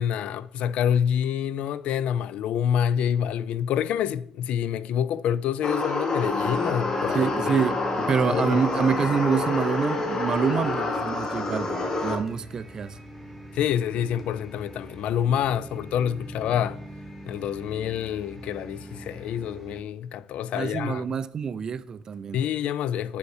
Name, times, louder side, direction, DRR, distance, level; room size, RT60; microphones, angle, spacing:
voice 1, 0.0-7.6 8.3-8.6 13.5-16.8 17.3-21.2 22.3-23.2, left 9 dB, 65° left, 0.3 m, -27 dB
sound 1, 5.6-12.2, left 2 dB, 30° left, 1.0 m, -28 dB
sound 2, 6.2-19.8, equal, ahead, 1.1 m, -42 dB
voice 2, 7.1-12.9 20.5-22.4, right 6 dB, 30° right, 0.3 m, -26 dB
6.5 x 5.1 x 4.8 m
cardioid pair, 170°, 2 cm